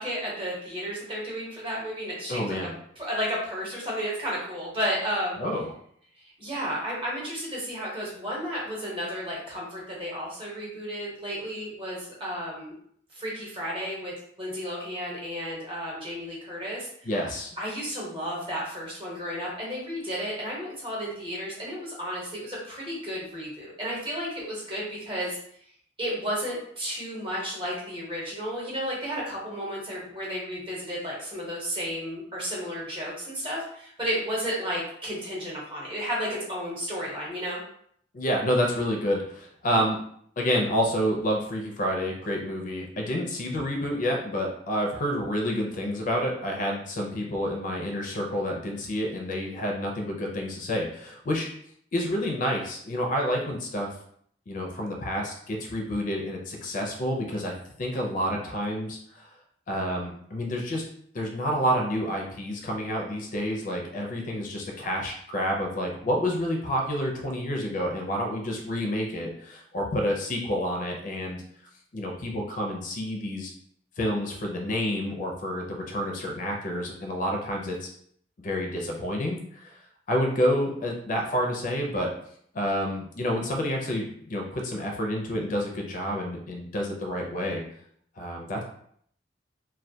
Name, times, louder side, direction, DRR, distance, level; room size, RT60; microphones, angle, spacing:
voice 1, 0.0-2.6 3.0-5.4 6.4-12.7 13.1-14.1 14.4-16.9 17.6-25.4 26.0-37.6, equal, 30° right, -5 dB, 0.8 m, -32 dB
voice 2, 2.3-2.7 5.4-5.7 17.1-17.5 38.1-40.0 40.4-51.5 51.9-53.9 54.5-59.3 59.7-60.8 61.1-71.4 71.9-73.5 74.0-77.9 78.4-79.8 80.1-82.1 82.5-87.6 88.2-88.6, equal, 45° left, 1 dB, 0.4 m, -29 dB
2.2 x 2.2 x 2.7 m, 0.65 s
head